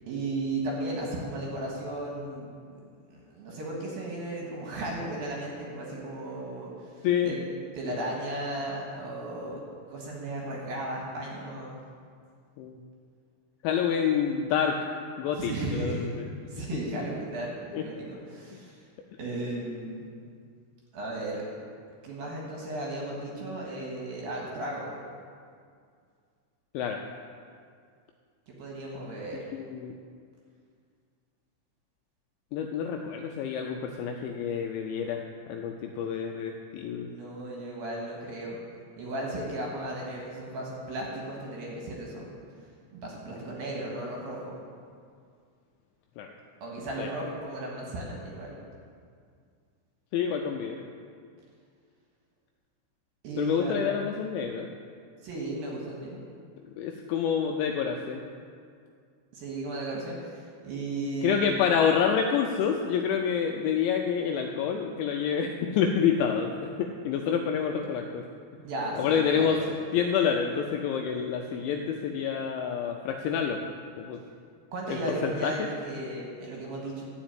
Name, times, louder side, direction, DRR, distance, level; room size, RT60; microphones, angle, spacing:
voice 1, 0.1-2.5 3.1-7.4 7.7-9.6 9.9-11.8 15.4-16.1 16.5-18.8 19.2-20.1 20.9-21.4 22.0-24.9 28.5-29.5 37.1-38.6 39.0-42.3 42.9-44.6 46.6-48.5 53.2-53.8 55.2-56.2 59.3-61.4 68.6-69.6 74.7-77.0, right 2 dB, 65° right, -2 dB, 2.7 m, -35 dB
voice 2, 13.6-14.8 15.2-16.3 17.7-17.8 26.7-27.0 29.5-29.9 32.5-35.2 35.5-37.1 46.2-46.3 47.0-47.1 50.1-50.8 53.4-54.7 56.8-58.2 61.2-66.5 66.8-68.2 69.0-69.6 69.9-73.6 74.0-74.2 74.9-75.7, left 7 dB, 85° left, 3 dB, 2.7 m, -28 dB
13.0 x 5.0 x 8.9 m, 2.2 s
omnidirectional pair, 5.8 m